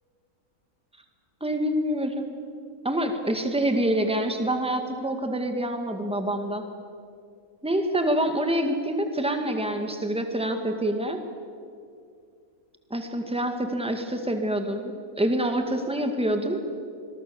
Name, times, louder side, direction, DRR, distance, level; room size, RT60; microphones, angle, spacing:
voice 1, 1.4-2.3 2.8-6.6 7.6-11.2 12.9-16.6, right 1 dB, 5° right, 5 dB, 1.9 m, -26 dB
26.0 x 21.5 x 7.1 m, 2.3 s
omnidirectional pair, 1.5 m